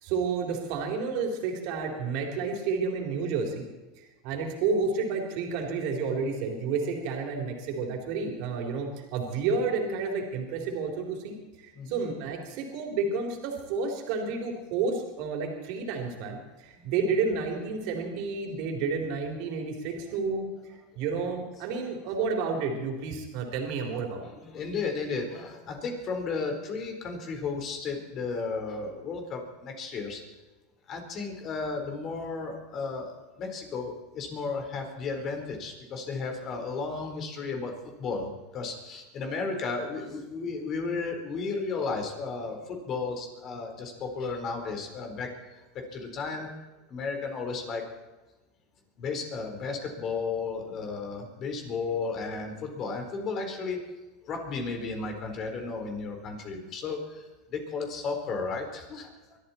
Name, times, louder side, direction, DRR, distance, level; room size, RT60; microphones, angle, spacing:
voice 1, 0.0-3.7 4.0-20.5 21.0-24.2, right 4 dB, 65° right, 2 dB, 3.7 m, -30 dB
voice 2, 24.4-30.2 30.9-46.5 46.9-47.9 49.0-53.8 54.2-59.4, left 4 dB, 45° left, 3 dB, 4.3 m, -34 dB
23.5 x 12.5 x 4.4 m, 1.1 s
hypercardioid pair, 105°, 0 cm